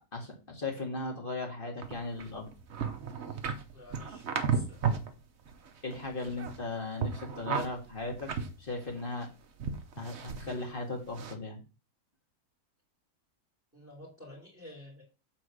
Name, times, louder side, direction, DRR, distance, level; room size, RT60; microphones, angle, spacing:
voice 1, 0.1-2.5 5.8-8.3 8.6-9.3 10.0-11.6, left 2 dB, 35° left, 1 dB, 2.0 m, -37 dB
sound 1, 1.8-5.1 5.5-6.7 7.0-9.3 9.6-10.6 11.1-11.4, right 6 dB, 50° right, 1.1 m, -34 dB
voice 2, 3.7-5.0 13.7-15.0, left 1 dB, 10° right, -2 dB, 2.9 m, -50 dB
7.5 x 3.9 x 6.2 m, 0.31 s
omnidirectional pair, 1.6 m